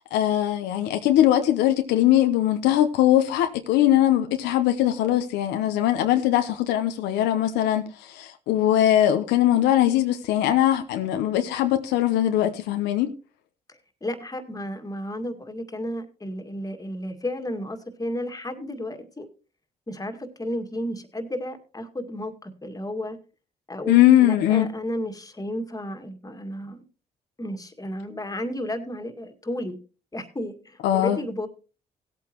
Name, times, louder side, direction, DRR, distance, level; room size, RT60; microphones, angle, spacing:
voice 1, 0.0-13.1 23.9-24.7 30.8-31.2, left 12 dB, 90° left, 0.9 m, -21 dB
voice 2, 13.7-19.3 19.9-23.2 23.7-26.8 27.4-29.8 30.1-31.5, left 1 dB, 20° left, 2.1 m, -33 dB
17.0 x 8.5 x 3.0 m
supercardioid pair, 60°, 17 cm